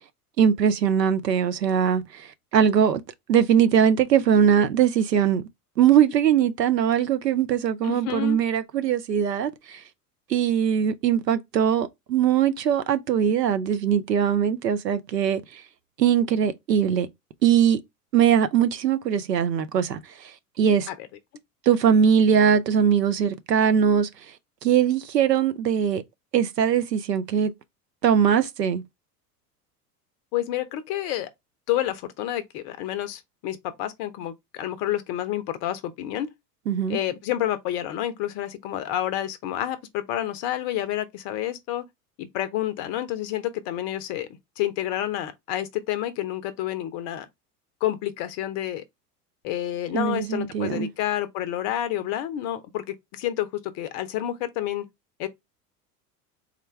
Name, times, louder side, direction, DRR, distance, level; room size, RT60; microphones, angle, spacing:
voice 1, 0.4-3.0 3.3-5.4 5.8-9.8 10.3-15.6 16.0-17.1 17.4-17.8 18.1-20.3 20.6-20.9 21.7-24.1 24.6-26.0 26.3-27.5 28.0-28.8 36.7-37.0 49.9-50.9, right 8 dB, 85° right, 0.6 m, -21 dB
voice 2, 7.8-8.4 20.9-21.0 30.3-31.3 31.7-36.3 36.9-41.9 42.2-44.3 44.6-47.3 47.8-48.8 49.4-53.5 53.7-54.9 55.2-55.3, left 12 dB, 35° left, 0.5 m, -29 dB
3.6 x 2.2 x 3.1 m
figure-of-eight pair, 85°, 48 cm